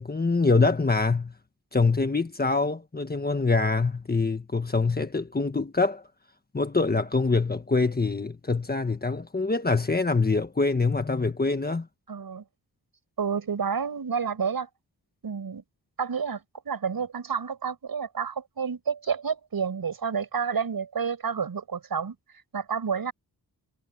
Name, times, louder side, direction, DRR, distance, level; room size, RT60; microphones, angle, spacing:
voice 1, 0.0-1.3 1.7-6.0 6.5-11.9, left 3 dB, 25° left, 1.5 m, -24 dB
voice 2, 12.1-12.4 13.2-14.7 15.2-15.6 16.0-22.1 22.5-23.1, right 6 dB, 60° right, 6.8 m, -30 dB
wide cardioid pair, 120°, 41 cm